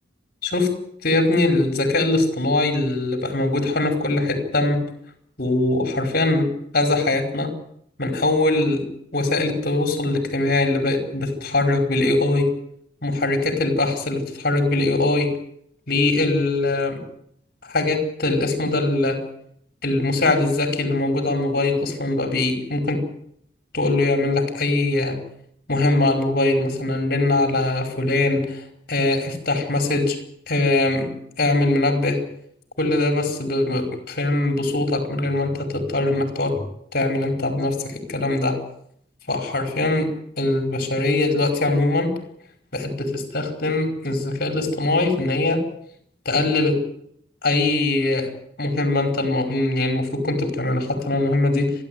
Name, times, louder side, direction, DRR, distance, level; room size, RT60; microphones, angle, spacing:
voice 1, 1.0-4.8 5.4-7.5 8.0-8.8 9.1-12.5 13.0-15.3 15.9-17.0 17.7-19.2 19.8-23.0 23.7-25.2 25.7-30.2 30.5-31.1 31.4-32.2 32.8-36.6 36.9-38.6 39.3-40.1 40.4-42.1 42.7-45.6 46.2-46.8 47.4-48.3 48.6-51.7, left 2 dB, 55° left, 6 dB, 5.1 m, -22 dB
29.5 x 12.0 x 9.5 m, 0.71 s
head